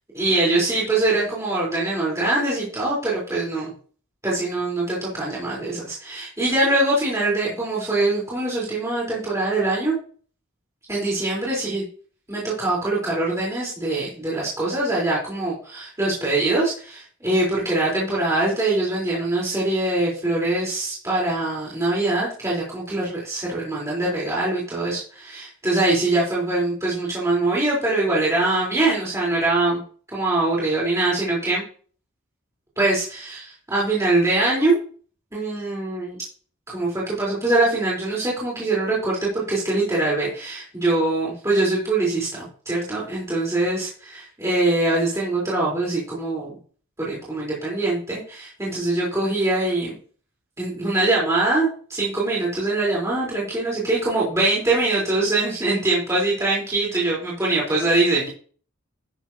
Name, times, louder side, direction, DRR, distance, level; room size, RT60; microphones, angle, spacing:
voice 1, 0.1-3.7 4.2-10.0 10.9-11.8 12.3-29.8 30.1-31.6 32.8-34.7 35.3-36.2 36.7-46.5 47.0-49.9 50.6-58.3, right 2 dB, 15° right, -6 dB, 3.6 m, -23 dB
11.5 x 10.0 x 2.8 m, 0.43 s
head